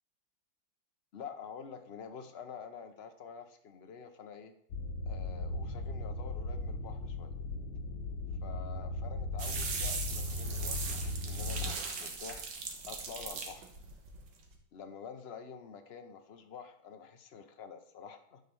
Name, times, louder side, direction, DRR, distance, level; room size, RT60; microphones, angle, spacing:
voice 1, 1.1-4.5 5.1-7.3 8.4-12.4 12.8-13.7 14.7-18.4, left 6 dB, 50° left, 7 dB, 0.7 m, -48 dB
sound 1, 4.7-11.8, left 2 dB, 90° left, 1.8 m, -37 dB
sound 2, 9.4-14.6, right 5 dB, 60° right, 2.0 m, -39 dB
10.5 x 5.0 x 7.0 m, 0.69 s
omnidirectional pair, 2.3 m